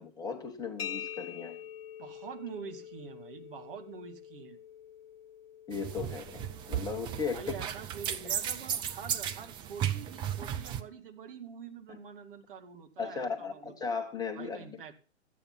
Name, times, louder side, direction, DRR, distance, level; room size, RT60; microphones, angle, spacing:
voice 1, 0.0-1.6 5.7-7.6 11.9-12.0 13.0-14.8, left 5 dB, 10° left, 4 dB, 1.2 m, -36 dB
sound 1, 0.8-8.3, left 9 dB, 55° left, 0.6 m, -46 dB
voice 2, 2.0-4.6 7.3-13.7 14.4-15.0, right 6 dB, 50° right, 6 dB, 2.1 m, -46 dB
sound 2, 5.7-10.8, right 10 dB, 15° right, 0.5 m, -35 dB
14.0 x 9.1 x 5.5 m, 0.35 s
figure-of-eight pair, 115°, 35 cm